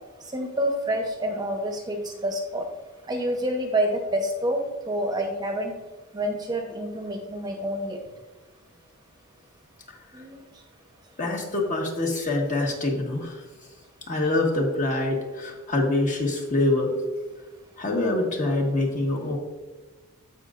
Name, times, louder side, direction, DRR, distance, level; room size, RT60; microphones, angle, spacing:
voice 1, 0.3-2.6 3.1-5.7 6.1-8.0 10.1-10.4, right 1 dB, 20° right, 2 dB, 0.9 m, -28 dB
voice 2, 11.2-13.4 14.1-16.9 17.8-19.4, left 2 dB, 35° left, 0 dB, 1.4 m, -25 dB
15.0 x 5.2 x 2.5 m, 1.3 s
head